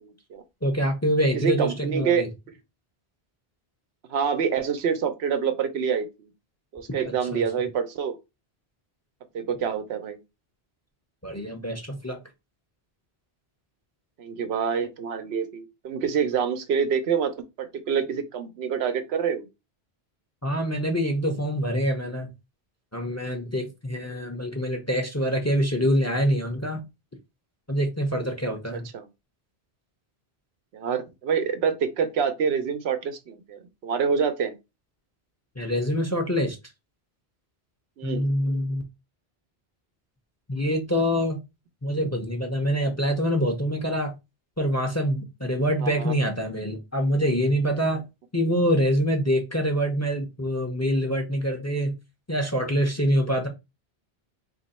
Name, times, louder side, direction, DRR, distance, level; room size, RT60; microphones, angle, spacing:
voice 1, 0.0-0.4 1.3-2.5 4.1-6.3 6.7-8.2 9.3-10.2 14.2-17.3 17.6-19.5 28.7-29.1 30.7-34.5 38.0-38.3 45.8-46.1, right 7 dB, 90° right, 0.9 m, -27 dB
voice 2, 0.6-2.3 7.3-7.4 11.2-12.2 20.4-22.3 22.9-26.8 27.7-28.9 35.6-36.6 38.0-38.8 40.5-41.4 41.8-44.1 44.6-48.0 48.3-52.0 52.3-53.5, equal, 20° left, 0.6 m, -25 dB
3.0 x 2.6 x 4.1 m
omnidirectional pair, 1.1 m